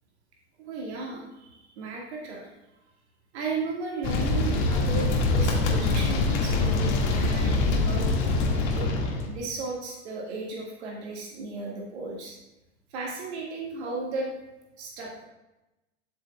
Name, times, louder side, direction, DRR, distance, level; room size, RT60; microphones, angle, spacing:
voice 1, 0.6-2.5 3.3-8.2 8.7-12.4 12.9-14.3 14.8-15.2, right 3 dB, 60° right, -2 dB, 1.7 m, -35 dB
sound 1, 4.0-9.3, left 3 dB, 50° left, 1.7 m, -24 dB
12.0 x 6.1 x 2.2 m, 0.97 s
figure-of-eight pair, 85°, 37 cm